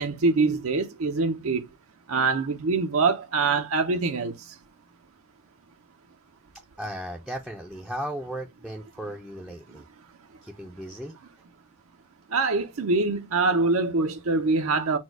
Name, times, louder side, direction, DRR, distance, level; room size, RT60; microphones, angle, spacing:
voice 1, 0.0-1.6 2.1-4.3 12.3-15.0, right 3 dB, 75° right, 0.6 m, -24 dB
voice 2, 6.8-9.9 10.4-11.1, equal, ahead, 0.5 m, -36 dB
4.4 x 2.2 x 4.6 m
head